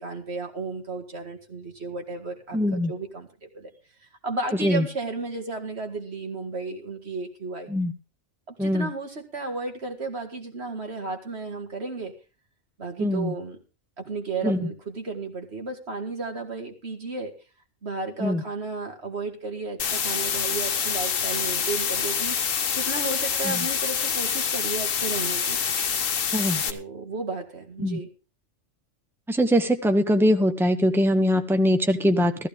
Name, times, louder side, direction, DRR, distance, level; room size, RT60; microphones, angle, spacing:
voice 1, 0.0-3.7 4.0-7.7 8.5-12.1 12.8-13.6 14.0-17.3 17.8-22.4 22.7-25.6 26.7-28.1, right 3 dB, 55° right, 3 dB, 2.3 m, -33 dB
voice 2, 2.5-2.9 4.6-4.8 7.7-7.9 8.6-8.9 13.0-13.3 14.4-14.6 18.2-18.4 23.4-23.6 26.3-26.6 27.8-28.0 29.3-32.5, equal, ahead, 7 dB, 0.8 m, -22 dB
sound 1, 19.8-26.7, left 7 dB, 85° left, 1.4 m, -26 dB
14.5 x 14.5 x 3.5 m, 0.33 s
omnidirectional pair, 1.3 m